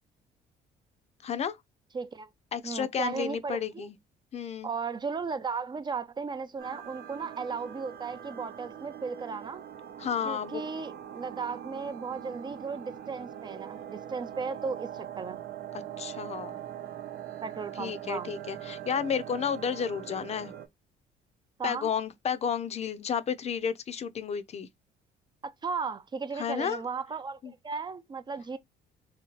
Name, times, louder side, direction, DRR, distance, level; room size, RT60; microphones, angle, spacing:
voice 1, 1.2-1.6 2.5-3.9 4.3-4.7 10.0-10.6 15.7-16.6 17.8-20.5 21.6-24.7 26.4-26.8 27.4-27.5, left 7 dB, 40° left, 0.5 m, -32 dB
voice 2, 1.9-2.3 2.6-3.9 4.6-9.6 10.2-15.4 17.4-18.3 21.6-21.9 25.4-28.6, right 5 dB, 25° right, 0.4 m, -36 dB
sound 1, 6.6-20.7, right 10 dB, 65° right, 0.8 m, -42 dB
3.1 x 2.8 x 3.0 m
cardioid pair, 110°, 17 cm